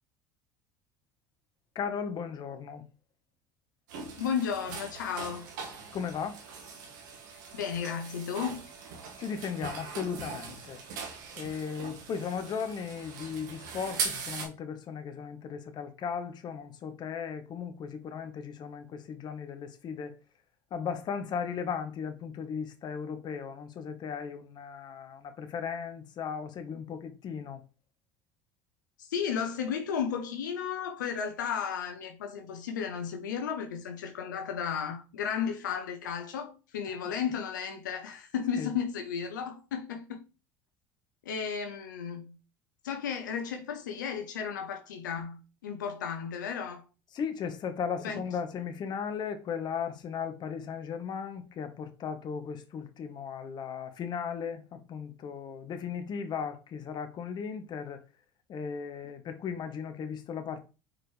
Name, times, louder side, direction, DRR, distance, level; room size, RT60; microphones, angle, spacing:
voice 1, 1.7-2.8 5.9-6.4 9.2-10.8 11.4-20.1 20.7-27.6 37.0-37.1 38.6-38.7 47.1-58.0 58.5-60.6, left 6 dB, 45° left, 1.3 m, -36 dB
sound 1, 3.9-14.5, right 5 dB, 80° right, 1.8 m, -40 dB
voice 2, 4.2-5.5 7.5-8.6 29.0-40.2 41.2-42.4 42.8-46.8 48.0-48.2, left 7 dB, 90° left, 0.9 m, -34 dB
5.9 x 4.8 x 3.3 m
hypercardioid pair, 80°, 10 cm